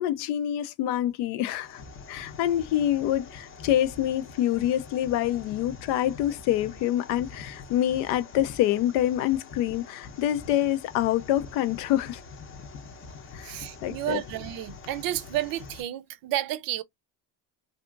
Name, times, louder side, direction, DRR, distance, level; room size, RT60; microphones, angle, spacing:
voice 1, 0.0-1.8 2.1-12.2 13.3-14.2, left 12 dB, 80° left, 0.6 m, -26 dB
sound 1, 1.5-15.8, left 4 dB, 30° left, 0.7 m, -45 dB
voice 2, 13.4-16.8, right 13 dB, 60° right, 0.5 m, -31 dB
2.7 x 2.4 x 2.5 m
supercardioid pair, 95°, 39 cm